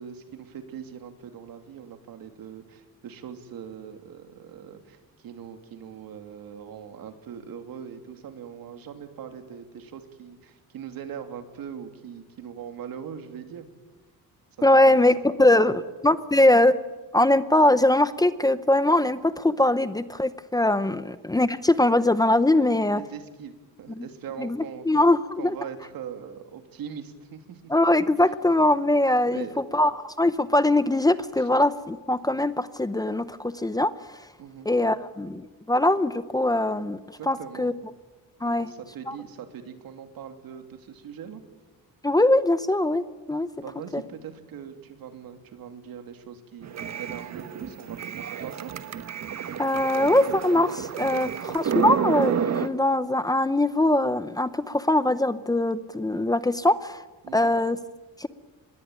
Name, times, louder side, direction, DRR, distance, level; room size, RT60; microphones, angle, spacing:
voice 1, 0.0-13.7 14.7-15.8 20.8-21.0 22.7-25.0 25.4-27.7 29.2-29.5 31.4-31.5 34.4-34.7 37.2-37.7 38.4-41.4 43.6-48.7 51.1-51.5 57.2-57.6, right 8 dB, 75° right, 7 dB, 2.8 m, -41 dB
voice 2, 14.6-15.7 16.0-16.8 17.1-23.0 24.0-24.1 24.4-24.6 24.9-25.5 27.7-29.4 29.7-29.9 30.2-33.9 34.7-37.0 37.3-37.7 38.4-38.7 39.1-39.2 42.0-43.5 49.6-57.0 57.3-57.8 58.2-58.3, left 1 dB, 10° left, 13 dB, 0.7 m, -22 dB
sound 1, 46.6-52.7, right 8 dB, 50° right, 1.3 m, -30 dB
25.5 x 21.0 x 9.2 m, 1.2 s
cardioid pair, 140°, 35 cm